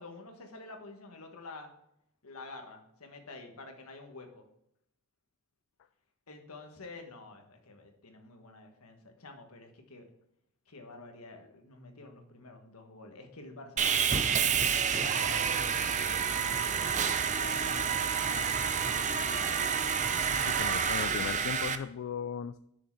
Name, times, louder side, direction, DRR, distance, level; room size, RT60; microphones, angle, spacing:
voice 1, 0.0-1.7 2.2-4.5 6.3-10.1 10.7-16.8 17.3-19.7 20.5-21.4, left 2 dB, 75° left, 4 dB, 1.4 m, -49 dB
Sawing, 13.8-21.7, right 7 dB, 35° right, 0.5 m, -29 dB
voice 2, 20.5-22.6, left 7 dB, 60° left, 11 dB, 0.3 m, -37 dB
6.6 x 6.5 x 4.6 m, 0.75 s
head